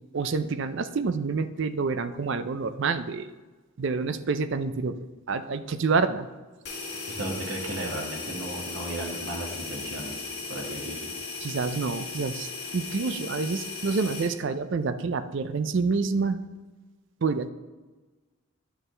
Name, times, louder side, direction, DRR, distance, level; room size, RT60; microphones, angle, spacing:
voice 1, 0.1-3.3 3.8-5.0 5.3-6.3 11.4-16.4 17.2-17.5, right 4 dB, 55° right, 11 dB, 0.4 m, -28 dB
sound 1, 6.6-14.3, left 4 dB, 50° left, 2.1 m, -37 dB
voice 2, 7.1-10.2 10.5-11.1, right 1 dB, 70° right, -1 dB, 1.8 m, -35 dB
10.5 x 6.7 x 3.3 m, 1.3 s
head